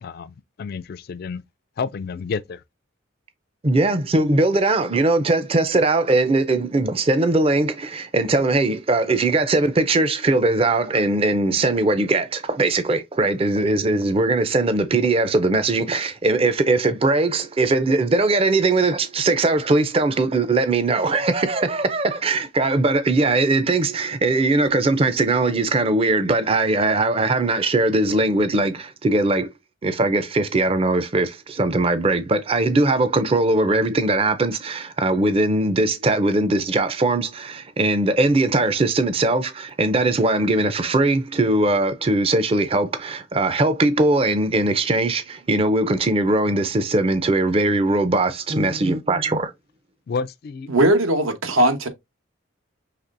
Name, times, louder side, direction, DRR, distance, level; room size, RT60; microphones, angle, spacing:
voice 1, 0.0-1.4 1.8-2.6 50.1-50.7, left 5 dB, 50° left, 0.3 m, -30 dB
voice 2, 3.6-29.5 29.8-49.5, right 2 dB, 30° right, 0.5 m, -20 dB
voice 3, 50.7-51.9, right 1 dB, 85° right, 1.1 m, -18 dB
5.8 x 3.3 x 2.5 m
head